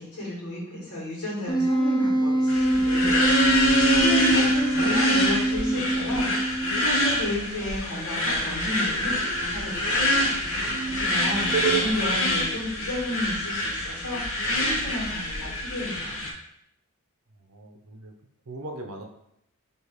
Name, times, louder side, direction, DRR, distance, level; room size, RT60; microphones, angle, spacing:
voice 1, 0.0-10.3 10.6-16.2, left 1 dB, 80° left, -6 dB, 1.7 m, -33 dB
Wind instrument woodwind instrument, 1.5-6.9, right 1 dB, 20° left, 0.5 m, -24 dB
sound 1, 2.5-16.3, equal, 65° left, 0.8 m, -25 dB
sound 2, 6.1-6.4 6.6-11.8, right 6 dB, 40° right, 0.8 m, -35 dB
voice 2, 11.6-12.0 17.5-18.1 18.5-19.0, right 1 dB, 75° right, 4 dB, 0.7 m, -40 dB
3.2 x 2.9 x 4.5 m, 0.77 s
head